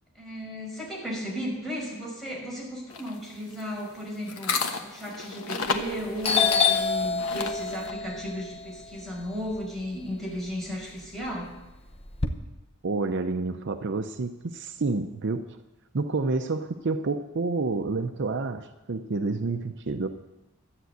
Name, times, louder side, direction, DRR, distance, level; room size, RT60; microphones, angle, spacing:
voice 1, 0.1-11.5, equal, ahead, -5 dB, 5.8 m, -35 dB
sound 1, 2.9-7.9, left 5 dB, 85° left, 1.2 m, -33 dB
Doorbell, 5.7-5.9 6.2-10.4 10.7-12.3, left 5 dB, 30° left, 0.9 m, -27 dB
voice 2, 12.8-15.6 15.9-20.1, right 3 dB, 60° right, 8 dB, 0.6 m, -29 dB
13.0 x 9.2 x 8.0 m, 1.0 s
head